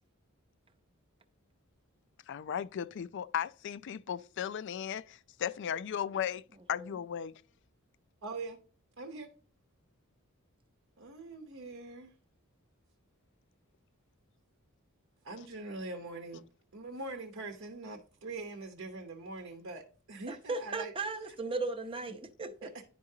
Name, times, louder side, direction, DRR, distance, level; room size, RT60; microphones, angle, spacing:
voice 1, 2.3-7.3, left 9 dB, 55° left, 0.3 m, -36 dB
voice 2, 8.2-8.6 9.0-9.3 11.0-12.1 15.2-16.4 16.7-20.9 21.2-21.3 22.6-22.9, right 3 dB, 65° right, 0.9 m, -43 dB
voice 3, 20.3-22.7, right 3 dB, 25° right, 0.7 m, -36 dB
10.5 x 4.8 x 2.7 m
head